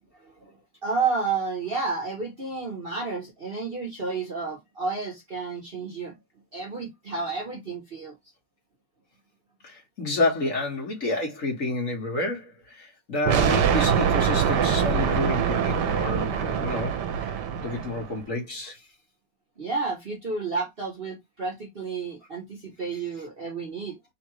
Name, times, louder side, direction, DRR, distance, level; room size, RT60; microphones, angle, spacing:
voice 1, 0.2-0.5 0.8-6.1 6.5-8.2 19.6-24.0, right 4 dB, 35° right, 1.0 m, -31 dB
voice 2, 9.6-17.3 17.6-18.8, left 2 dB, 45° left, 1.9 m, -29 dB
sound 1, 13.3-18.1, right 7 dB, 70° right, 1.3 m, -24 dB
3.9 x 2.5 x 4.6 m
omnidirectional pair, 2.1 m